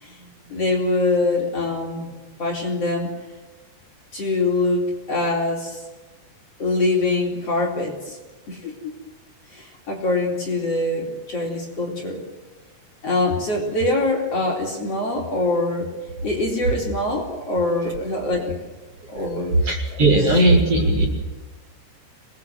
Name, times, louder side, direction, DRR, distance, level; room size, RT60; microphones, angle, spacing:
voice 1, 0.0-2.1 2.4-3.1 4.1-5.8 6.6-8.2 8.5-8.7 9.5-12.2 13.0-15.9 16.2-18.6 19.1-19.7 20.1-20.2, left 2 dB, 35° left, -1 dB, 4.6 m, -24 dB
voice 2, 19.7-21.1, right 2 dB, 35° right, -1 dB, 5.4 m, -17 dB
28.0 x 21.5 x 7.9 m, 1.2 s
omnidirectional pair, 4.8 m